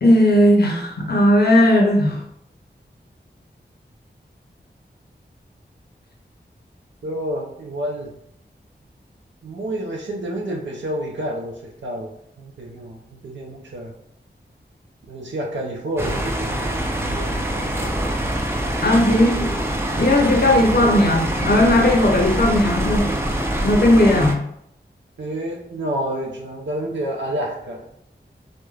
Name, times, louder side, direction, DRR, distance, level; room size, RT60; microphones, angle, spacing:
voice 1, 0.0-2.2 18.8-19.5 20.0-23.1 23.6-24.4, left 1 dB, 60° left, 0 dB, 0.6 m, -16 dB
voice 2, 7.0-8.2 9.4-12.1 12.4-13.9 15.1-17.8 25.2-27.9, right 1 dB, 85° right, -1 dB, 0.5 m, -29 dB
sound 1, 16.0-24.3, right 1 dB, 15° right, 0.4 m, -24 dB
3.1 x 2.1 x 2.3 m, 0.74 s
wide cardioid pair, 65°, 19 cm